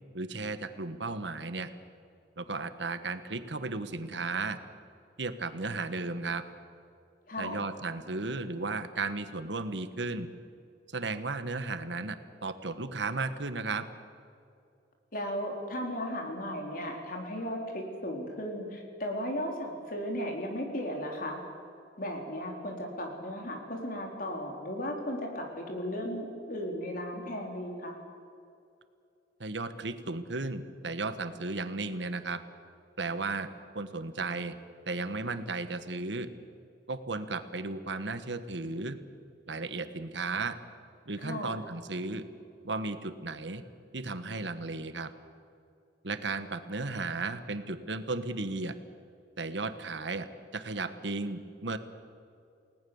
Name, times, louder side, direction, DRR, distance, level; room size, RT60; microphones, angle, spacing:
voice 1, 0.1-1.7 2.4-4.6 5.2-6.4 7.4-10.3 10.9-13.9 29.4-32.4 33.0-33.5 33.7-34.5 34.9-36.3 36.9-39.0 39.5-40.5 41.1-42.2 42.6-43.6 43.9-45.1 46.0-48.7 49.4-50.3 50.5-51.8, right 3 dB, 80° right, 10 dB, 1.4 m, -34 dB
voice 2, 7.3-7.6 15.1-21.4 22.0-28.0 41.2-41.6, equal, 50° left, 2 dB, 4.4 m, -36 dB
29.5 x 18.5 x 7.2 m, 2.5 s
head